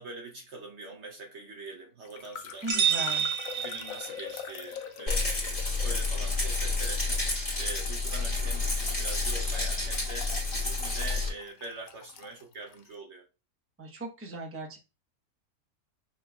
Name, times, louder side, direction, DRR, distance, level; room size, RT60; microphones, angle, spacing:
voice 1, 0.0-3.2 3.6-13.3, right 2 dB, 55° right, 0.9 m, -44 dB
sound 1, 2.0-12.9, left 7 dB, 70° left, 1.0 m, -44 dB
voice 2, 2.6-3.3 13.8-14.8, right 2 dB, 10° right, 0.8 m, -38 dB
sound 2, 2.7-4.5, right 7 dB, 80° right, 1.5 m, -29 dB
Rattle, 5.1-11.3, left 3 dB, 30° left, 1.9 m, -29 dB
5.6 x 3.8 x 2.3 m
omnidirectional pair, 1.6 m